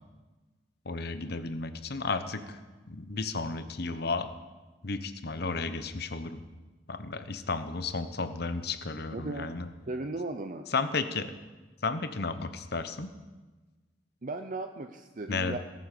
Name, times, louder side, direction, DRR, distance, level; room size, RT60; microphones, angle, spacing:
voice 1, 0.8-2.6 2.9-4.3 4.8-6.4 6.9-9.7 10.7-11.3 11.8-13.1 15.3-15.6, left 3 dB, 55° left, 10 dB, 1.0 m, -33 dB
voice 2, 9.1-9.5 9.9-10.7 14.2-15.6, right 2 dB, 45° right, 7 dB, 0.7 m, -36 dB
18.0 x 9.4 x 6.8 m, 1.3 s
head